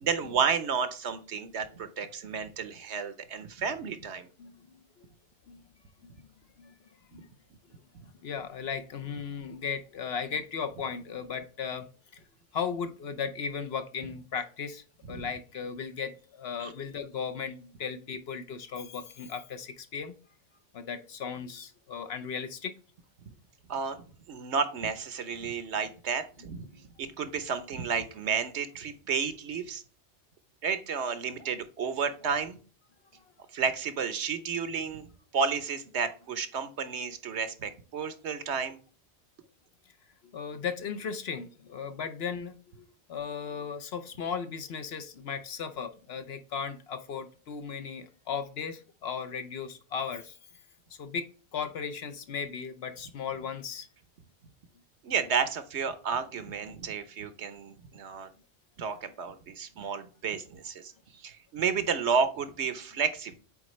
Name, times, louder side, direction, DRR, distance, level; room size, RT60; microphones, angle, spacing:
voice 1, 0.0-4.3 7.9-8.0 15.1-15.3 16.6-16.7 23.7-24.0 24.3-26.7 27.0-29.8 30.6-32.6 33.5-35.1 35.3-38.8 55.0-58.3 58.8-63.4, right 6 dB, 70° right, 12 dB, 1.1 m, -31 dB
voice 2, 4.4-5.1 5.5-5.6 6.0-6.3 6.6-6.8 7.1-7.3 8.2-11.9 12.1-12.2 12.5-20.1 20.7-22.7 40.3-50.4 51.0-53.9, left 6 dB, 60° left, 9 dB, 0.9 m, -36 dB
8.4 x 3.8 x 3.1 m, 0.39 s
omnidirectional pair, 1.2 m